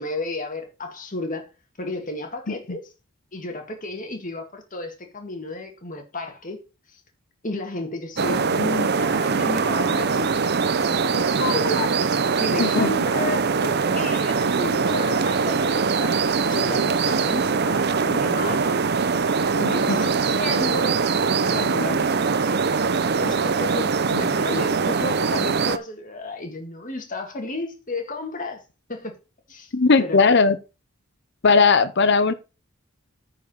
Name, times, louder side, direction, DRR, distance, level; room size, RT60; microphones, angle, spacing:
voice 1, 0.0-1.4 1.8-2.9 3.3-6.6 6.9-7.0 7.4-11.9 12.3-16.2 16.4-18.8 19.6-21.0 21.5-22.1 22.5-22.7 23.2-28.6 28.9-29.1 29.5-29.7 30.0-30.2, left 2 dB, 35° left, 2.0 m, -32 dB
sound 1, 8.2-25.8, right 5 dB, 50° right, 0.6 m, -22 dB
voice 2, 12.6-12.9 19.6-20.0 29.7-30.6 31.4-32.3, left 4 dB, 50° left, 0.7 m, -18 dB
9.5 x 4.9 x 5.6 m
head